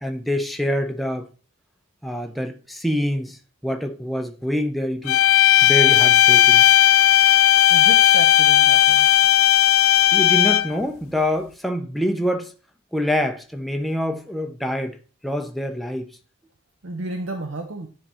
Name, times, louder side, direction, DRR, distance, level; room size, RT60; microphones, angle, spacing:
voice 1, 0.0-1.3 2.0-3.4 3.6-5.2 5.6-6.6 10.1-12.5 12.9-15.0 15.2-16.1, left 1 dB, ahead, 0.6 m, -25 dB
sound 1, 5.1-10.8, left 12 dB, 75° left, 0.4 m, -15 dB
voice 2, 7.3-9.1 16.8-17.9, right 2 dB, 65° right, 0.7 m, -32 dB
9.6 x 3.6 x 4.2 m
head